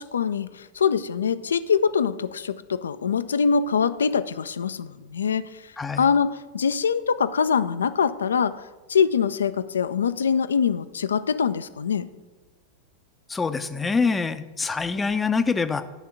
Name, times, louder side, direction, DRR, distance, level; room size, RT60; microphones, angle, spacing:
voice 1, 0.0-5.7 6.0-8.6 8.9-12.1, left 6 dB, 70° left, 13 dB, 0.3 m, -24 dB
voice 2, 13.3-15.8, left 4 dB, 15° left, 10 dB, 0.5 m, -25 dB
10.0 x 3.6 x 7.1 m, 1.2 s
figure-of-eight pair, 90°, 0 cm